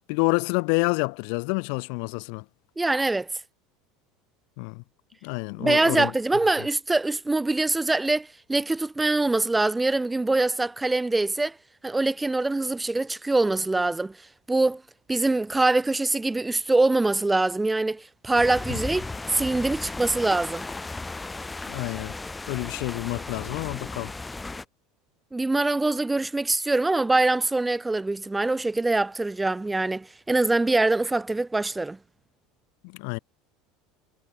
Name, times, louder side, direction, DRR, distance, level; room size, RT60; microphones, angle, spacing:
voice 1, 0.1-2.4 4.6-4.8 5.2-6.1 18.7-18.8 21.7-22.1 22.5-24.1 32.8-33.2, left 40 dB or more, 70° left, 0.7 m, -28 dB
voice 2, 2.8-3.3 5.6-11.5 11.8-14.2 14.5-14.8 15.1-20.7 25.3-32.0, right 2 dB, 10° right, 0.4 m, -24 dB
sound 1, 18.3-24.7, left 3 dB, 10° left, 1.0 m, -36 dB
supercardioid pair, 120°, 0 cm